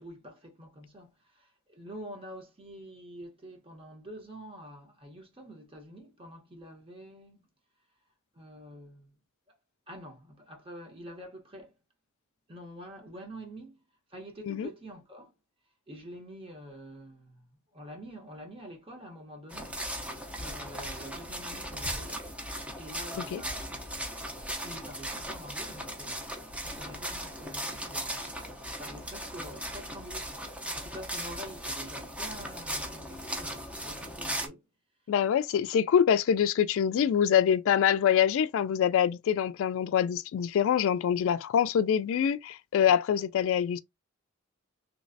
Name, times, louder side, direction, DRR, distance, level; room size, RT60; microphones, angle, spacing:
voice 1, 0.0-7.5 8.3-9.2 9.5-9.6 9.9-11.7 12.5-13.8 14.1-15.3 15.9-19.8 20.3-22.3 22.8-23.8 24.6-28.3 28.8-34.6, equal, 25° right, 1.1 m, -47 dB
sound 1, 19.5-34.5, equal, 5° right, 0.6 m, -38 dB
voice 2, 35.1-43.8, left 8 dB, 65° left, 0.3 m, -25 dB
3.1 x 3.0 x 2.6 m
head